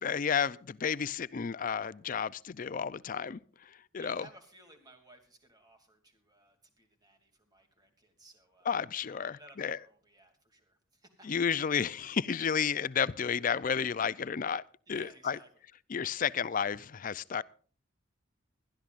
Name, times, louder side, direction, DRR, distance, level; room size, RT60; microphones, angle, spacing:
voice 1, 0.0-3.4 3.9-4.3 8.7-9.8 11.2-14.6 14.9-15.4 15.9-17.4, left 7 dB, 45° left, 0.5 m, -31 dB
voice 2, 3.9-8.7 9.1-11.4 14.9-15.6 16.0-16.3, right 1 dB, 20° right, 2.6 m, -58 dB
21.0 x 13.0 x 2.5 m
head